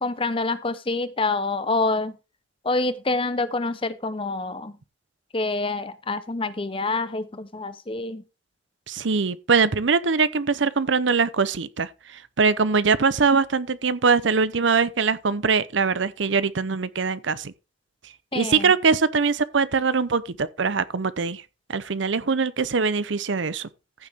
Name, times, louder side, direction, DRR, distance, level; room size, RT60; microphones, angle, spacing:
voice 1, 0.0-2.1 2.6-4.8 5.3-8.2 18.3-18.7, left 3 dB, 30° left, 0.9 m, -26 dB
voice 2, 8.9-17.5 18.3-21.4 21.7-23.7, right 5 dB, 75° right, 0.7 m, -22 dB
14.5 x 6.8 x 3.6 m
head